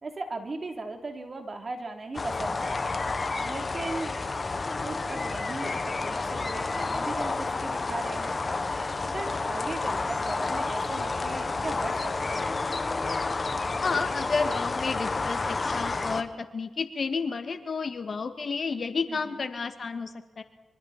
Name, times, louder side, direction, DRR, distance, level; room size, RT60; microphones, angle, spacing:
voice 1, 0.0-3.0 3.4-4.1 4.8-8.4 9.0-12.5 19.1-19.5, right 3 dB, 45° right, 4 dB, 3.4 m, -38 dB
sound 1, 2.1-16.2, left 3 dB, 40° left, 1.5 m, -30 dB
voice 2, 13.8-20.4, left 4 dB, 55° left, 8 dB, 1.9 m, -31 dB
25.0 x 24.0 x 4.3 m, 1.1 s
cardioid pair, 50°, 0 cm